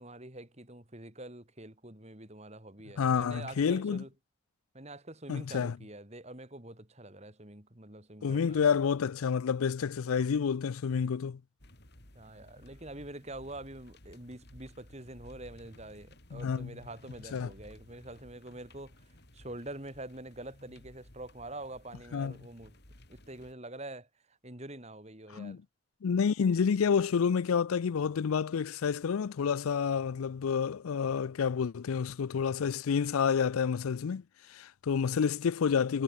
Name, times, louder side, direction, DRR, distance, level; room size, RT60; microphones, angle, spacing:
voice 1, 0.0-4.1 4.7-8.6 12.1-22.8 23.1-25.6, right 1 dB, 30° right, 2.9 m, -46 dB
voice 2, 3.0-4.0 5.3-5.8 8.2-11.4 16.3-16.7 17.3-17.5 22.1-22.3 25.3-25.6 26.0-34.2 34.5-36.0, left 6 dB, 85° left, 0.4 m, -29 dB
sound 1, 11.6-23.5, left 1 dB, 50° left, 5.3 m, -56 dB
head